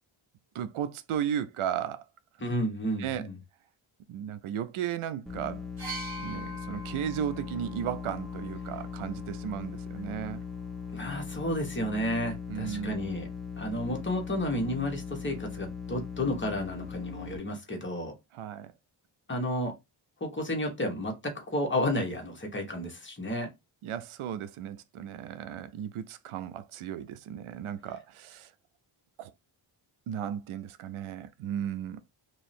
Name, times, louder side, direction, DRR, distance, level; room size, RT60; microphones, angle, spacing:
voice 1, 0.5-2.0 3.0-3.3 4.1-5.6 6.2-10.4 12.5-13.0 18.3-18.7 23.8-28.5 29.2-29.3 30.1-32.0, right 9 dB, 80° right, 0.6 m, -35 dB
voice 2, 2.4-3.3 10.9-13.3 13.6-18.1 19.3-19.7 20.2-23.5, left 1 dB, 25° left, 1.1 m, -32 dB
sound 1, 5.3-17.4, left 6 dB, ahead, 0.7 m, -39 dB
sound 2, 5.8-9.6 10.6-10.8, right 1 dB, 45° right, 1.2 m, -44 dB
3.1 x 2.7 x 4.2 m
wide cardioid pair, 120°, 49 cm